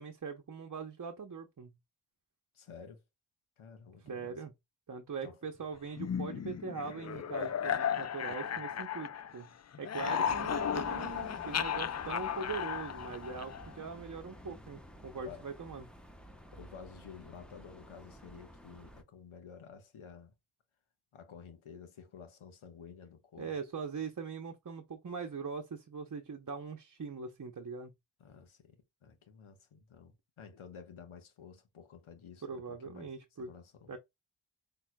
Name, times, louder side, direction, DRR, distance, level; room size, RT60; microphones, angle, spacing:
voice 1, 0.0-1.7 4.0-4.5 4.9-9.5 9.8-15.8 23.4-27.9 32.4-33.5 33.9-34.0, right 5 dB, 40° right, 0.8 m, -41 dB
voice 2, 2.5-3.0 3.6-4.4 5.2-5.5 10.0-10.3 15.1-15.5 16.5-20.3 21.1-23.6 28.2-34.0, left 6 dB, 80° left, 1.3 m, -52 dB
sound 1, 6.0-9.5 9.7-13.8, left 8 dB, 35° left, 0.4 m, -35 dB
sound 2, 10.3-19.0, equal, ahead, 1.0 m, -52 dB
6.1 x 3.3 x 2.3 m
cardioid pair, 65°, 48 cm